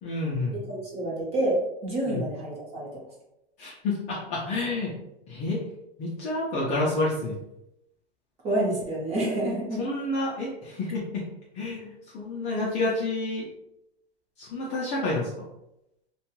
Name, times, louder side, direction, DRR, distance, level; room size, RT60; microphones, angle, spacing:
voice 1, 0.0-0.5 2.1-2.2 3.6-4.9 5.3-5.6 6.0-7.4 9.8-11.2 11.5-13.5 14.4-15.3, left 2 dB, 25° left, -6 dB, 0.4 m, -29 dB
voice 2, 0.5-3.0 8.4-9.9, right 1 dB, 20° right, -4 dB, 0.8 m, -28 dB
2.6 x 2.2 x 2.9 m, 0.85 s
hypercardioid pair, 140°, 32 cm